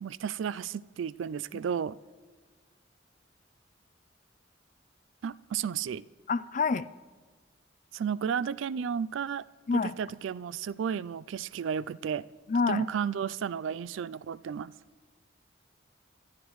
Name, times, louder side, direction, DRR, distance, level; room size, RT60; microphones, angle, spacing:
voice 1, 0.0-2.0 5.2-6.0 7.9-9.5 10.0-12.2 12.7-14.7, right 7 dB, 80° right, 19 dB, 0.3 m, -33 dB
voice 2, 6.3-6.9 9.7-9.9 12.5-12.9, left 4 dB, 40° left, 16 dB, 0.3 m, -27 dB
25.5 x 13.0 x 3.1 m, 1.4 s
head